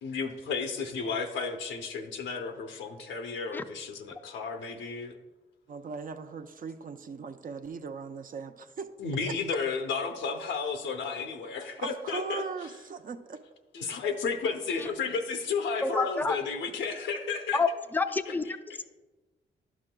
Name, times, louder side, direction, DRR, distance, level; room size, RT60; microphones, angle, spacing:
voice 1, 0.0-5.2 9.0-12.4 13.7-17.6, left 5 dB, 80° left, 5 dB, 0.7 m, -33 dB
voice 2, 5.7-8.9 9.3-9.4 11.8-13.4, right 5 dB, 45° right, 8 dB, 0.6 m, -39 dB
voice 3, 15.8-16.4 17.5-18.6, left 3 dB, 10° left, 9 dB, 0.4 m, -28 dB
11.0 x 6.2 x 2.3 m, 1.2 s
cardioid pair, 65°, 19 cm